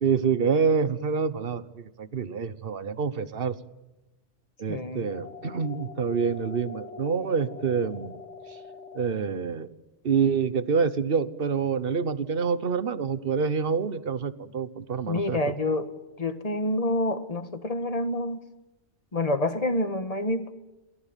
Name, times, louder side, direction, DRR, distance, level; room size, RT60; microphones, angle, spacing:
voice 1, 0.0-3.6 4.6-8.2 8.9-9.7 10.0-15.4, right 6 dB, 55° right, 15 dB, 1.3 m, -27 dB
voice 2, 4.7-5.1 15.1-15.9 16.2-18.4 19.1-20.5, left 1 dB, 30° left, 10 dB, 1.7 m, -27 dB
sound 1, 5.1-9.1, left 4 dB, 80° left, 2.4 m, -43 dB
28.0 x 18.5 x 9.2 m, 1.0 s
omnidirectional pair, 1.2 m